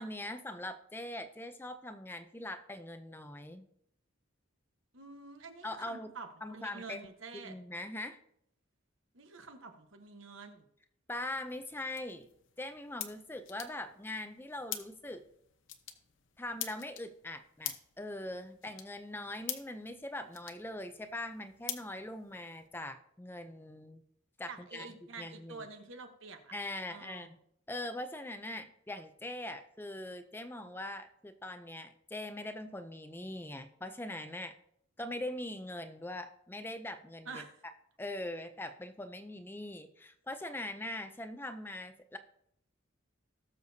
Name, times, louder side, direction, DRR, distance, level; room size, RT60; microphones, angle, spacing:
voice 1, 0.0-3.7 5.6-6.1 6.4-7.0 7.4-8.2 11.1-12.3 12.6-15.2 16.4-24.0 24.4-24.9 25.2-25.7 26.5-27.4 27.7-34.5 35.0-37.4 38.0-42.2, left 1 dB, 10° left, 9 dB, 0.5 m, -42 dB
voice 2, 4.9-7.6 9.1-10.7 24.5-26.5 26.9-27.3 37.2-37.6, right 4 dB, 70° right, 6 dB, 1.2 m, -48 dB
sound 1, 11.2-22.7, left 11 dB, 65° left, 0.9 m, -47 dB
18.0 x 6.7 x 2.8 m, 0.72 s
head